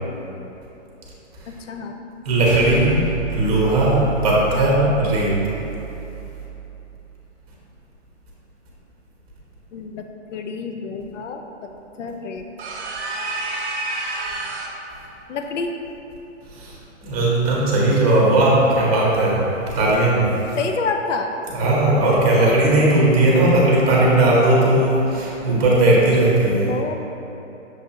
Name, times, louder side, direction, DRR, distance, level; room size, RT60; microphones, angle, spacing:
voice 1, 1.6-2.0 4.5-4.8 9.7-10.0 10.3-11.7 12.0-12.4 15.3-15.7 20.6-21.3 26.7-27.0, left 4 dB, 75° left, 4 dB, 0.5 m, -28 dB
voice 2, 2.2-5.4 16.5-16.7 17.0-19.4 19.7-20.3 21.5-26.7, right 1 dB, 30° right, -4 dB, 0.9 m, -17 dB
sound 1, 2.4-7.0, right 6 dB, ahead, 0.5 m, -32 dB
sound 2, 12.6-14.8, right 2 dB, 60° right, 0.7 m, -28 dB
6.3 x 2.6 x 2.7 m, 3.0 s
hypercardioid pair, 150°, 37 cm